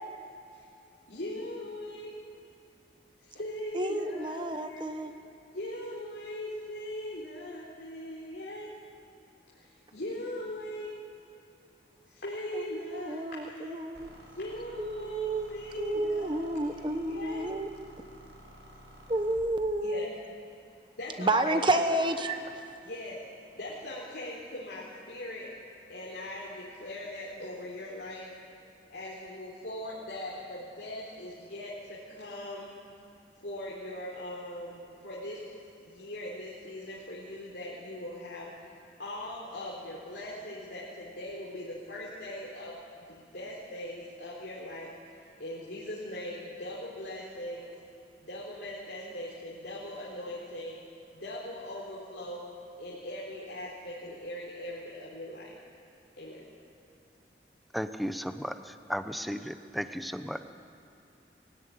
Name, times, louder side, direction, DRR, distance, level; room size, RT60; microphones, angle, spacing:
voice 1, 1.1-2.2 3.2-5.1 5.5-8.7 9.5-9.7 9.9-11.0 12.1-13.8 14.3-17.5 19.8-20.1 21.0-21.6 22.0-22.1 22.8-23.2 23.6-25.6 25.9-28.4 28.9-32.7 33.4-35.5 35.8-38.5 39.0-42.8 43.1-44.9 45.4-47.8 48.2-50.8 51.1-55.6 56.2-56.5, left 1 dB, 75° left, -6 dB, 3.8 m, -40 dB
voice 2, 3.7-5.1 12.5-14.1 14.8-15.5 15.8-17.7 19.1-20.1 21.2-22.6, right 1 dB, 25° right, 7 dB, 1.2 m, -30 dB
sound 1, 13.9-19.5, equal, 85° right, 5.2 m, -52 dB
voice 3, 57.7-60.4, equal, ahead, 9 dB, 0.7 m, -35 dB
21.5 x 16.5 x 9.9 m, 2.7 s
head